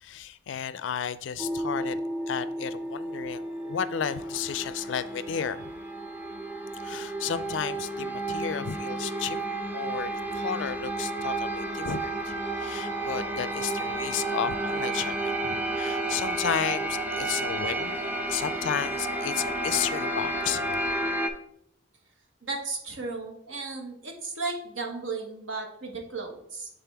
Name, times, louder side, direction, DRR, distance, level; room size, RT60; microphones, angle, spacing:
voice 1, 0.0-5.7 6.8-9.4 9.7-18.0 18.3-20.8, left 8 dB, 70° left, 0.4 m, -33 dB
sound 1, 1.4-21.3, right 2 dB, 10° right, 0.6 m, -31 dB
voice 2, 22.4-26.7, right 3 dB, 90° right, 1.4 m, -35 dB
7.5 x 3.9 x 3.4 m
head